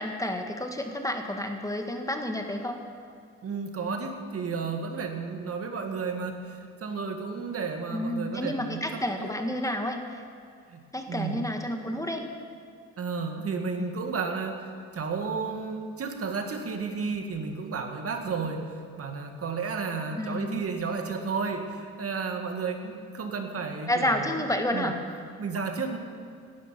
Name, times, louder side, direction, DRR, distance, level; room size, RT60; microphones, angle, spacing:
voice 1, 0.0-2.8 7.9-10.2 10.9-12.2 20.2-20.6 23.9-24.9, left 1 dB, 10° left, 4 dB, 1.5 m, -30 dB
voice 2, 3.4-9.3 10.7-10.8 11.1-11.5 13.0-24.4 24.7-24.9 25.4-26.0, right 4 dB, 50° right, 4 dB, 2.0 m, -32 dB
17.0 x 12.5 x 5.9 m, 2.3 s
cardioid pair, 90°, 30 cm